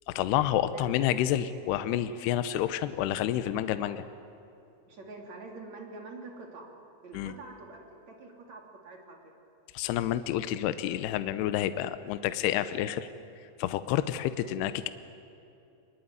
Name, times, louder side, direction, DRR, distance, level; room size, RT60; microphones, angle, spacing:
voice 1, 0.1-4.0 7.1-7.3 9.7-13.1 13.6-14.9, left 12 dB, 80° left, 12 dB, 2.7 m, -29 dB
voice 2, 4.9-6.7 7.0-9.3, right 3 dB, 45° right, 1 dB, 3.8 m, -46 dB
23.5 x 21.5 x 9.5 m, 2.8 s
omnidirectional pair, 4.9 m